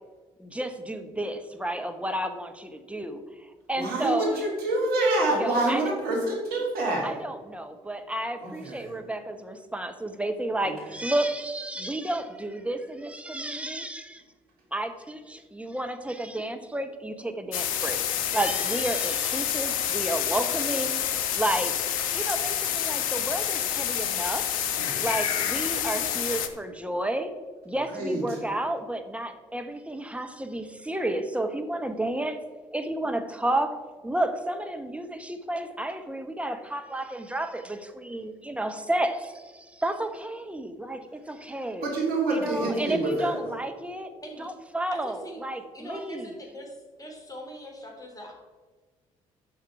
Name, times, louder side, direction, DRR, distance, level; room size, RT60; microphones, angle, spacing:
voice 1, 0.4-3.2 3.7-4.4 5.4-5.8 7.0-14.2 14.7-18.0 18.3-24.5 25.0-27.3 27.6-32.4 32.7-33.8 34.0-41.9 42.3-44.1 44.4-46.3, right 1 dB, 5° right, 7 dB, 1.2 m, -31 dB
voice 2, 3.7-7.1 8.4-8.9 24.8-25.1 25.7-26.2 27.9-28.2 41.8-43.5, right 2 dB, 65° right, -3 dB, 3.3 m, -27 dB
sound 1, 17.5-26.5, left 10 dB, 80° left, 0.6 m, -28 dB
voice 3, 44.9-45.4 45.7-48.3, equal, 20° left, 0 dB, 3.1 m, -42 dB
10.5 x 6.5 x 4.7 m, 1.4 s
hypercardioid pair, 45°, 17 cm